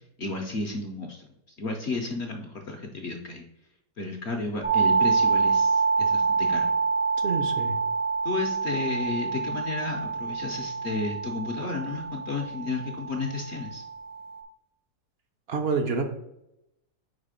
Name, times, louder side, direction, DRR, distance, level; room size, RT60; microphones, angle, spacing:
voice 1, 0.2-1.3 1.6-3.4 4.0-6.7 8.2-13.8, left 3 dB, 60° left, 2 dB, 0.7 m, -32 dB
sound 1, 4.6-14.4, right 4 dB, 15° left, 0.4 m, -26 dB
voice 2, 7.2-7.7 15.5-16.0, right 5 dB, 60° right, 5 dB, 0.6 m, -27 dB
4.7 x 4.0 x 5.0 m, 0.86 s
omnidirectional pair, 1.7 m